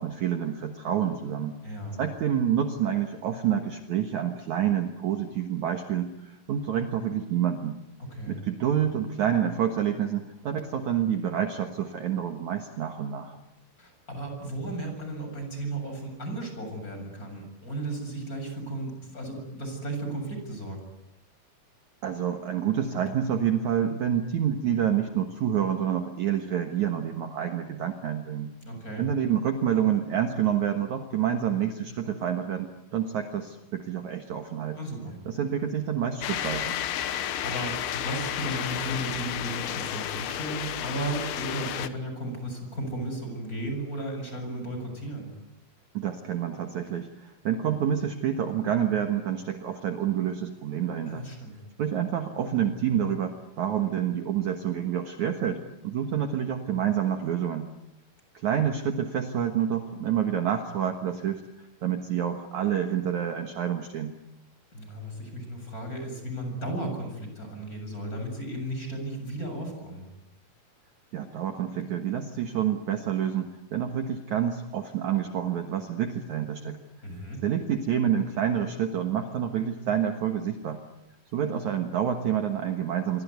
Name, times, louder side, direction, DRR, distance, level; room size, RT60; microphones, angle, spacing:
voice 1, 0.0-1.6 2.0-7.8 8.3-13.4 22.0-28.5 29.0-34.8 35.3-36.8 45.9-51.2 51.8-57.7 58.3-61.4 61.8-64.1 71.1-76.8 77.4-80.8 81.3-83.2, right 9 dB, 60° right, 6 dB, 2.4 m, -28 dB
voice 2, 1.6-2.0 8.1-8.4 13.8-20.8 28.6-29.1 34.7-35.2 37.0-45.3 51.0-51.6 64.7-70.1 77.0-77.4, right 1 dB, 20° left, 5 dB, 7.9 m, -35 dB
sound 1, 36.2-41.9, left 11 dB, 75° left, 3.1 m, -32 dB
26.5 x 24.0 x 9.5 m, 0.87 s
omnidirectional pair, 4.4 m